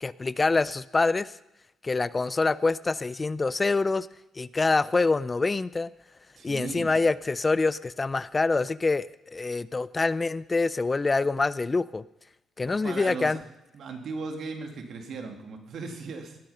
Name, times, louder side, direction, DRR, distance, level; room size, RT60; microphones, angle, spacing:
voice 1, 0.0-1.3 1.8-4.1 4.4-5.9 6.4-12.0 12.6-13.4, left 3 dB, 25° left, 18 dB, 0.4 m, -25 dB
voice 2, 6.4-6.9 12.7-13.4 13.7-16.4, right 4 dB, 65° right, 3 dB, 2.4 m, -37 dB
18.5 x 9.1 x 5.6 m, 0.89 s
cardioid pair, 90°, 0 cm